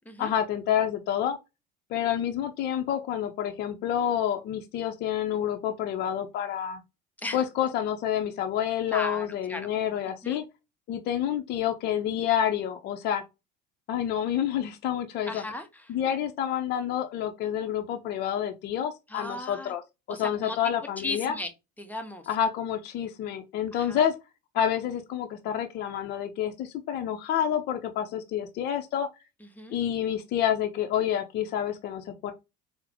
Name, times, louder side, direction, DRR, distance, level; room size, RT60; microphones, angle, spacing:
voice 1, 0.2-1.4 1.9-6.8 7.3-10.4 10.9-13.2 13.9-15.4 15.9-19.8 20.1-21.3 22.3-24.1 24.5-29.1 29.7-32.3, left 10 dB, 50° left, 0.6 m, -28 dB
voice 2, 8.9-9.7 10.2-10.4 15.2-16.0 19.1-19.7 20.1-20.6 21.0-21.5 21.8-22.3 23.7-24.1 29.4-29.8, left 2 dB, 10° left, 0.7 m, -37 dB
3.7 x 2.0 x 2.8 m
supercardioid pair, 95°, 21 cm